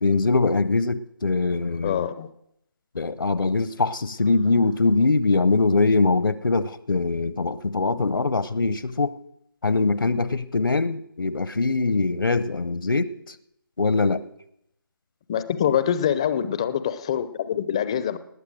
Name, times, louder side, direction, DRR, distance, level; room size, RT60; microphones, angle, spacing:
voice 1, 0.0-2.1 2.9-9.2 9.6-13.3 13.8-14.2, left 3 dB, 70° left, 16 dB, 0.8 m, -22 dB
voice 2, 1.8-2.3 15.3-18.2, left 9 dB, 15° left, 13 dB, 0.5 m, -25 dB
19.0 x 8.4 x 6.3 m, 0.76 s
figure-of-eight pair, 160°, 12 cm